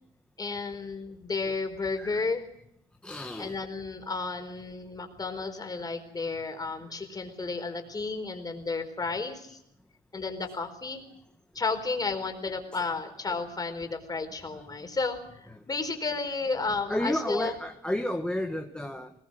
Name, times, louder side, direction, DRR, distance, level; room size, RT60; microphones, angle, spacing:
voice 1, 0.4-2.5 3.4-9.6 10.1-11.0 11.5-15.2 15.7-17.5, left 4 dB, 20° left, 5 dB, 4.4 m, -32 dB
voice 2, 2.0-2.3 3.0-3.6 8.2-8.4 12.7-12.8 14.5-14.6 15.5-15.6 16.5-19.1, left 1 dB, 5° left, 4 dB, 1.5 m, -32 dB
20.5 x 20.5 x 6.5 m, 0.75 s
cardioid pair, 110°, 17 cm